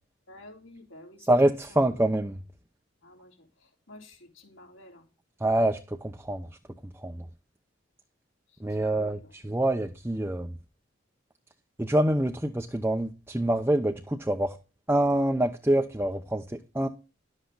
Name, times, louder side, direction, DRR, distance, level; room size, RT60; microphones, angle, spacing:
voice 1, 0.3-1.3 1.7-1.8 3.0-5.1 8.5-9.3, left 1 dB, 75° left, 4.0 m, -51 dB
voice 2, 1.3-2.4 5.4-6.5 7.0-7.3 8.6-10.5 11.8-14.5 14.9-16.9, right 1 dB, 10° right, 0.7 m, -26 dB
11.5 x 8.0 x 3.9 m
head